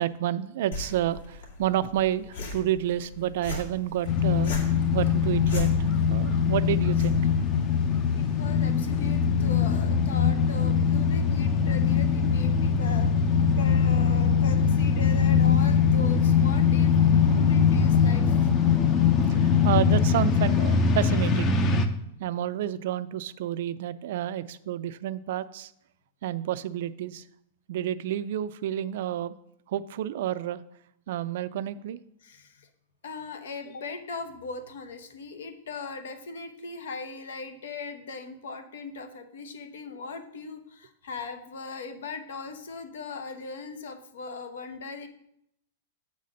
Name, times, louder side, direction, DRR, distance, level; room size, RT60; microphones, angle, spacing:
voice 1, 0.0-4.5 4.9-5.7 6.1-7.2 19.3-21.6 22.2-25.7 26.2-27.2 27.7-29.4 29.7-30.6 31.1-32.0, right 12 dB, 55° right, 15 dB, 0.3 m, -29 dB
sound 1, 0.7-8.7, left 2 dB, 65° left, 2.2 m, -40 dB
sound 2, 4.1-21.9, left 6 dB, 20° left, 0.5 m, -22 dB
voice 2, 8.1-13.1 13.6-18.4 19.8-20.0 32.2-32.7 33.0-45.1, left 4 dB, 80° left, 8 dB, 1.0 m, -39 dB
7.5 x 4.1 x 6.3 m, 0.76 s
supercardioid pair, 170°, 0 cm